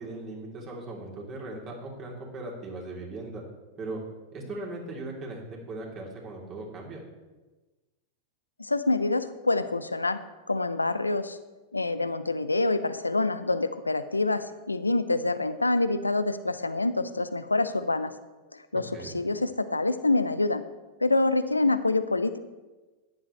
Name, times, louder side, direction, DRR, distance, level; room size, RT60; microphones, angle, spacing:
voice 1, 0.0-3.4 3.8-4.0 4.3-7.0 18.9-19.2, right 2 dB, 35° right, -2 dB, 3.4 m, -38 dB
voice 2, 8.6-10.2 10.5-11.4 11.7-18.1 18.5-20.6 21.0-22.4, left 2 dB, 90° left, 12 dB, 0.6 m, -26 dB
13.5 x 10.5 x 3.3 m, 1.2 s
figure-of-eight pair, 95°, 0 cm